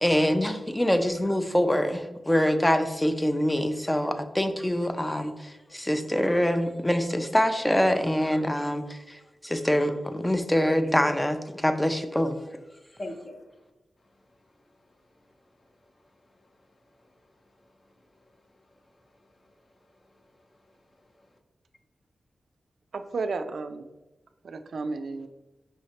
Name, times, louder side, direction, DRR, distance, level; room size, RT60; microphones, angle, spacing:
voice 1, 0.0-12.4, equal, 10° left, 8 dB, 0.4 m, -25 dB
voice 2, 13.0-13.7 14.0-21.4, left 1 dB, 40° left, 3 dB, 0.8 m, -49 dB
voice 3, 22.9-23.9 24.4-25.3, right 3 dB, 75° right, 8 dB, 0.3 m, -32 dB
5.5 x 3.1 x 2.8 m, 1.1 s
wide cardioid pair, 85°, 0 cm